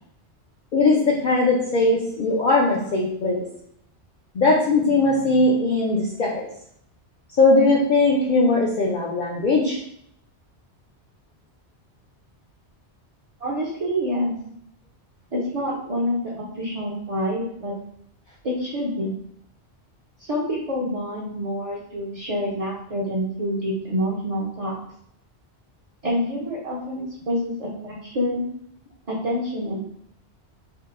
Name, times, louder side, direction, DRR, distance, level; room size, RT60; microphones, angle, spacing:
voice 1, 0.7-3.4 4.3-6.5 7.4-9.8, left 2 dB, 55° left, -3 dB, 0.5 m, -19 dB
voice 2, 13.4-14.3 15.3-17.7 18.4-19.1 20.3-24.7 26.0-28.5 29.1-29.8, equal, 45° right, -4 dB, 0.5 m, -27 dB
4.4 x 2.0 x 2.4 m, 0.71 s
omnidirectional pair, 1.1 m